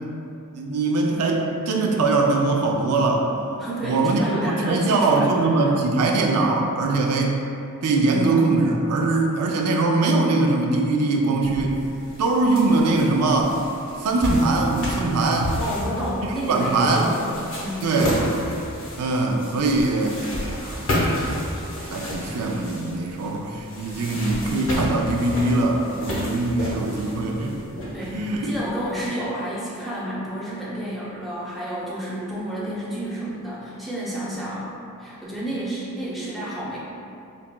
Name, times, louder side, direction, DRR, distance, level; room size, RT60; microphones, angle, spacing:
voice 1, 0.5-3.3 3.8-7.4 7.8-11.8 12.2-13.6 14.0-15.6 16.2-17.1 17.8-18.2 19.0-20.9 21.8-27.7 28.0-28.5, right 2 dB, 90° right, 1 dB, 0.4 m, -22 dB
voice 2, 3.6-5.3 5.7-5.8 15.6-17.3 17.6-17.8 27.9-34.7 35.0-36.8, right 1 dB, ahead, -9 dB, 0.7 m, -30 dB
sound 1, 11.4-28.9, left 1 dB, 60° left, 0.7 m, -31 dB
5.3 x 2.3 x 2.2 m, 2.7 s
head